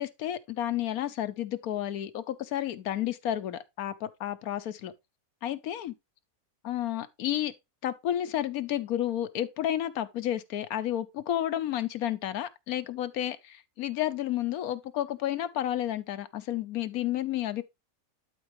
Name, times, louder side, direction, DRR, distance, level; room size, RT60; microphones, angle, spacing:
voice 1, 0.0-4.9 5.4-5.9 6.6-7.5 7.8-17.6, left 12 dB, 90° left, 1.2 m, -31 dB
11.5 x 4.6 x 3.1 m
omnidirectional pair, 1.5 m